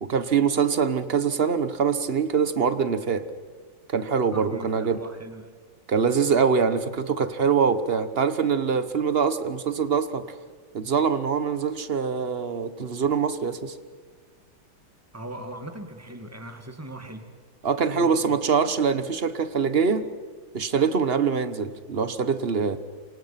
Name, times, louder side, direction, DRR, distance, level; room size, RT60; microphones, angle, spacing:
voice 1, 0.0-3.2 3.9-5.0 5.9-10.3 10.7-13.8 17.6-20.0 20.5-22.8, right 6 dB, 35° right, 12 dB, 1.2 m, -24 dB
voice 2, 4.3-5.5 15.1-17.2 17.9-18.3, right 1 dB, 10° right, 6 dB, 2.2 m, -39 dB
27.5 x 26.0 x 5.9 m, 1.5 s
omnidirectional pair, 2.1 m